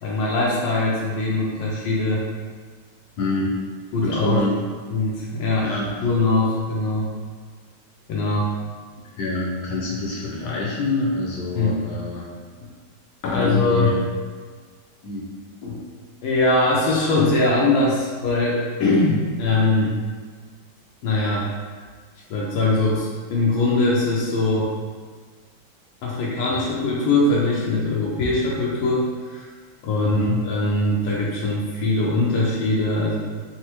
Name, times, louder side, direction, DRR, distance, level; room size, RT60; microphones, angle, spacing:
voice 1, 0.0-2.2 3.9-4.4 4.9-5.7 6.0-7.1 8.1-8.5 11.5-11.8 13.2-13.9 15.6-15.8 16.2-19.9 21.0-21.5 22.3-24.7 26.0-29.5 29.8-33.2, left 2 dB, 90° left, -5 dB, 1.4 m, -21 dB
voice 2, 3.2-3.6 4.0-4.6 5.6-6.1 9.1-12.2 13.3-13.9 15.0-15.3 26.5-26.7 30.0-30.4, left 2 dB, 70° left, -4 dB, 1.0 m, -26 dB
4.2 x 2.0 x 2.9 m, 1.5 s
omnidirectional pair, 2.1 m